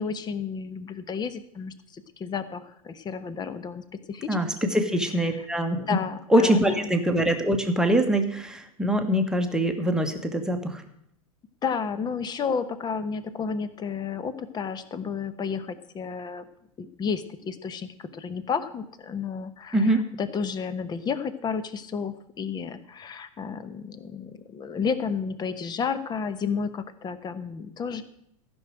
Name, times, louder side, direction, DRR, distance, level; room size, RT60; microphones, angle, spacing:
voice 1, 0.0-4.4 4.6-4.7 5.3-5.5 5.9-6.8 11.6-16.4 16.8-28.0, left 6 dB, 20° left, 13 dB, 1.0 m, -32 dB
voice 2, 4.3-5.9 6.3-10.8 19.7-20.0, right 1 dB, 5° right, 4 dB, 1.4 m, -23 dB
14.5 x 6.3 x 7.8 m, 0.74 s
figure-of-eight pair, 95°, 19 cm